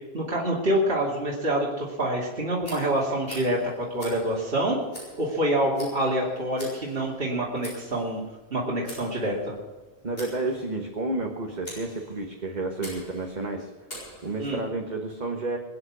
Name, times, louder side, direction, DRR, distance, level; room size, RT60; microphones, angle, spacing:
voice 1, 0.1-4.8 5.2-8.2 8.5-9.5 14.4-14.6, right 1 dB, 60° right, -4 dB, 2.8 m, -26 dB
Tick, 2.6-14.7, equal, 65° left, 7.0 m, -46 dB
voice 2, 10.0-13.7 14.2-15.6, right 2 dB, 45° right, 1 dB, 1.6 m, -31 dB
22.0 x 9.6 x 6.2 m, 1.3 s
omnidirectional pair, 1.1 m